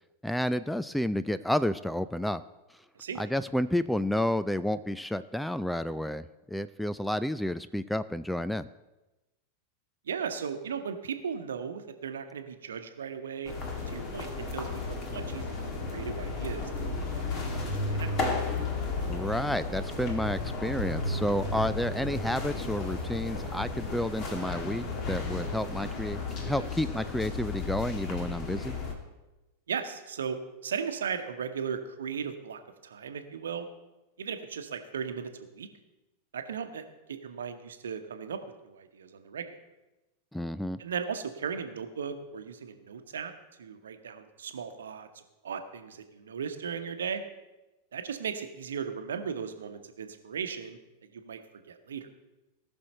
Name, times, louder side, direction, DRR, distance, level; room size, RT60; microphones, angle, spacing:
voice 1, 0.2-2.4 3.2-8.7 19.1-28.7 40.3-40.8, left 1 dB, ahead, 14 dB, 0.3 m, -30 dB
voice 2, 10.1-13.5 13.9-15.6 15.9-17.7 17.9-18.1 29.7-33.7 34.2-35.7 36.3-39.5 40.8-43.3 43.6-47.2 47.9-50.8 51.1-51.4 51.7-52.1, right 6 dB, 65° right, 8 dB, 1.0 m, -37 dB
sound 1, 13.4-28.9, left 3 dB, 35° left, 1.8 m, -33 dB
18.5 x 6.2 x 4.3 m, 1.1 s
figure-of-eight pair, 90°, 0 cm